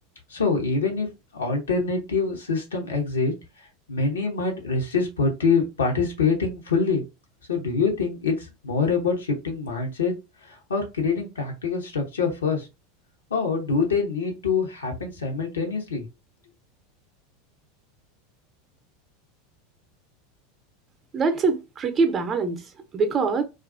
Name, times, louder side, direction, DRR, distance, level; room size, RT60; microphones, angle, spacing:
voice 1, 0.3-1.1 1.3-3.3 3.9-7.0 7.5-10.1 10.4-12.7 13.3-16.0, left 4 dB, 80° left, 0.8 m, -25 dB
voice 2, 21.1-23.4, right 4 dB, 30° right, 0.6 m, -24 dB
2.4 x 2.3 x 2.4 m
hypercardioid pair, 85°, 0 cm